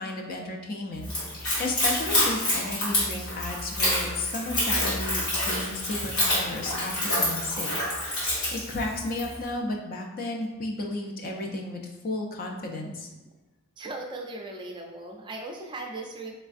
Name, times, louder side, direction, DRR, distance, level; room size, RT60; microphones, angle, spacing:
voice 1, 0.0-7.7 8.0-13.1, left 2 dB, 40° left, 1 dB, 0.4 m, -33 dB
Splash splatter / Trickle dribble, 1.0-9.3, left 1 dB, 70° left, 1.5 m, -27 dB
voice 2, 13.8-16.3, right 2 dB, 20° right, 1 dB, 0.4 m, -38 dB
3.4 x 3.1 x 2.5 m, 1.1 s
head